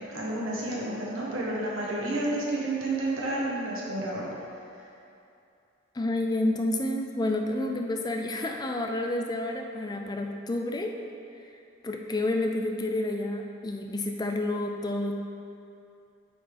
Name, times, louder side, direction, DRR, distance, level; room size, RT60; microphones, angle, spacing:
voice 1, 0.1-4.3, right 2 dB, 80° right, -4 dB, 1.3 m, -30 dB
voice 2, 5.9-11.0 11.8-15.2, left 1 dB, 20° left, 3 dB, 0.4 m, -29 dB
8.5 x 4.2 x 3.4 m, 2.6 s
head